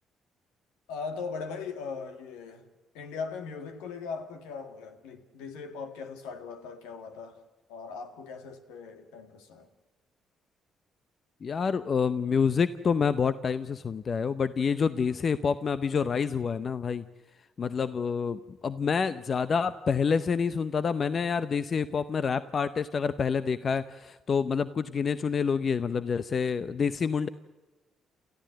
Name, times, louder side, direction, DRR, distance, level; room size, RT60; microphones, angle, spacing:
voice 1, 0.9-2.6 2.9-7.4 7.7-9.7, left 5 dB, 80° left, 1.9 m, -39 dB
voice 2, 11.4-17.0 17.6-27.3, left 6 dB, 50° left, 0.7 m, -27 dB
29.0 x 14.5 x 7.7 m
hypercardioid pair, 50°, 0 cm